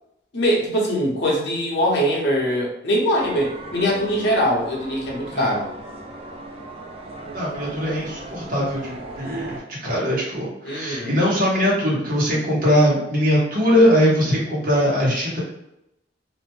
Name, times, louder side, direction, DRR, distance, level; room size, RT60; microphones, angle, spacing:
voice 1, 0.3-5.7 10.6-11.1, equal, 65° left, -3 dB, 0.8 m, -22 dB
sound 1, 3.2-9.6, right 2 dB, 35° right, 0.3 m, -37 dB
voice 2, 7.3-15.4, equal, 50° right, -5 dB, 1.0 m, -21 dB
2.5 x 2.1 x 3.0 m, 0.86 s
head